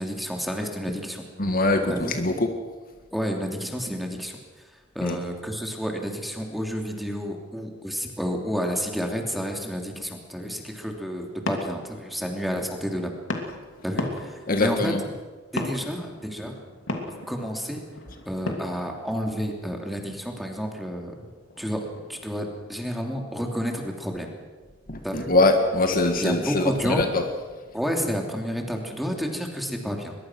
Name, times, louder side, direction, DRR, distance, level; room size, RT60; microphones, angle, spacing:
voice 1, 0.0-1.2 1.9-2.1 3.1-4.4 4.9-13.2 13.8-14.9 15.5-16.6 17.3-17.8 18.2-21.1 21.6-21.8 22.1-24.4 25.0-25.3 26.2-27.1 27.7-30.2, equal, ahead, 2 dB, 3.0 m, -30 dB
voice 2, 1.4-2.5 5.0-5.2 14.5-15.0 24.9-27.3, left 2 dB, 50° left, 5 dB, 1.8 m, -23 dB
sound 1, 10.7-22.8, left 2 dB, 80° left, 2.8 m, -38 dB
22.5 x 22.0 x 6.3 m, 1.3 s
head